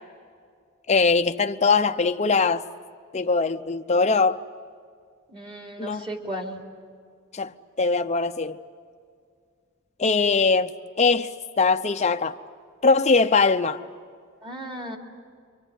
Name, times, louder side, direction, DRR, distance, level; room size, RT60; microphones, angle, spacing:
voice 1, 0.9-2.6 3.1-4.4 5.8-6.0 7.3-7.5 7.8-8.6 10.0-11.3 11.6-12.4 12.8-13.8, left 4 dB, 30° left, 0.7 m, -21 dB
voice 2, 5.3-6.6 14.4-15.0, right 1 dB, 25° right, 3.3 m, -35 dB
29.5 x 24.5 x 8.2 m
head